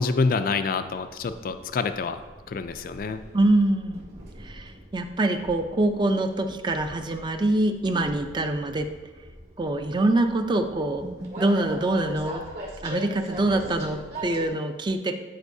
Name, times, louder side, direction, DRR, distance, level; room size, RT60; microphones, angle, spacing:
voice 1, 0.0-2.2 2.5-3.2, left 4 dB, 55° left, 9 dB, 0.4 m, -26 dB
Train, 0.7-14.5, right 1 dB, 60° right, 2.4 m, -41 dB
voice 2, 3.3-4.1 4.4-8.9 9.6-11.1 11.4-12.4 12.8-15.2, right 2 dB, 25° right, 7 dB, 0.5 m, -24 dB
12.5 x 5.2 x 2.7 m, 1.3 s
head